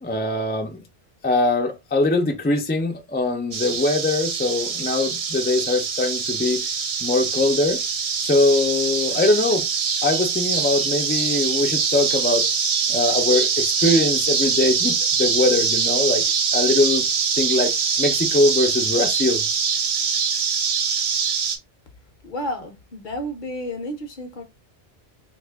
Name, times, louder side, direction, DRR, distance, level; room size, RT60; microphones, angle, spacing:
voice 1, 0.0-0.8 1.2-6.6 7.0-7.8 8.2-9.7 10.0-12.5 12.9-16.2 16.5-17.0 17.4-17.7 18.0-19.4, left 2 dB, 15° left, 0.3 m, -22 dB
sound 1, 3.5-21.6, right 6 dB, 50° right, 0.4 m, -23 dB
voice 2, 22.2-24.4, equal, 55° left, 0.8 m, -31 dB
2.6 x 2.4 x 3.4 m
omnidirectional pair, 1.1 m